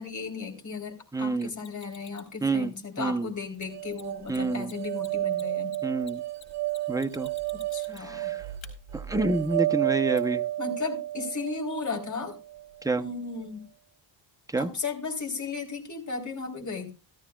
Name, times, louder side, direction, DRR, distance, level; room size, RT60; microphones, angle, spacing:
voice 1, 0.0-5.8 7.7-8.4 10.6-12.4 13.0-13.7 14.6-16.9, left 4 dB, 35° left, 0 dB, 3.8 m, -35 dB
voice 2, 1.1-1.5 2.4-3.3 4.3-4.7 5.8-6.2 6.9-7.3 8.1-8.4 8.9-10.4 12.8-13.0 14.5-14.7, right 3 dB, 5° right, 7 dB, 0.8 m, -28 dB
Mechanisms, 1.6-2.3 3.5-3.6 3.9-4.0 4.3-4.4 4.6-8.2 8.6-8.7 10.2-10.3, left 7 dB, 65° left, 3.5 m, -50 dB
sound 1, 3.7-12.9, right 15 dB, 55° right, 1.5 m, -32 dB
15.0 x 13.5 x 2.4 m, 0.29 s
cardioid pair, 115°, 49 cm